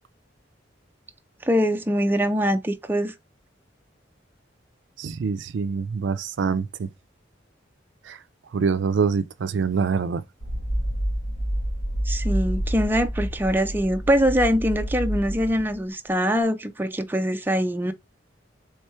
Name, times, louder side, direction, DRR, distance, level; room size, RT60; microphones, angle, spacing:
voice 1, 1.4-3.1 12.1-17.9, equal, 10° right, 0.4 m, -23 dB
voice 2, 5.0-6.9 8.1-8.2 8.5-10.2, right 5 dB, 75° right, 0.4 m, -25 dB
sound 1, 10.4-15.8, equal, 60° left, 1.3 m, -28 dB
3.6 x 3.3 x 4.3 m
head